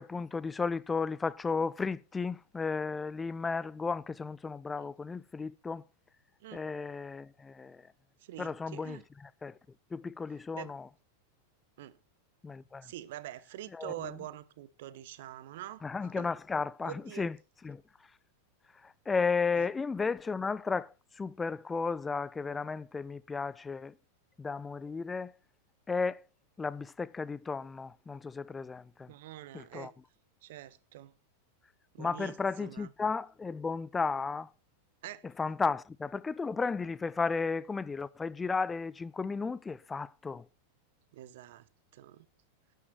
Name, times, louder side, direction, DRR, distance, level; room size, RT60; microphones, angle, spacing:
voice 1, 0.0-5.8 6.5-7.8 8.4-9.0 9.4-9.5 9.9-10.9 12.4-12.9 13.7-14.1 15.8-17.4 17.6-17.8 18.8-23.9 24.4-25.3 25.9-26.2 26.6-29.1 29.5-29.9 32.0-34.5 35.4-40.4, left 4 dB, 15° left, 0.5 m, -34 dB
voice 2, 8.2-9.0 10.5-10.7 11.8-12.0 12.8-15.8 16.2-16.3 16.8-17.3 19.5-19.7 29.1-29.9 30.4-31.1 31.9-32.9 35.0-35.2 41.1-41.7 41.9-42.3, right 13 dB, 55° right, 0.9 m, -45 dB
12.0 x 9.3 x 4.2 m
figure-of-eight pair, 90°, 0 cm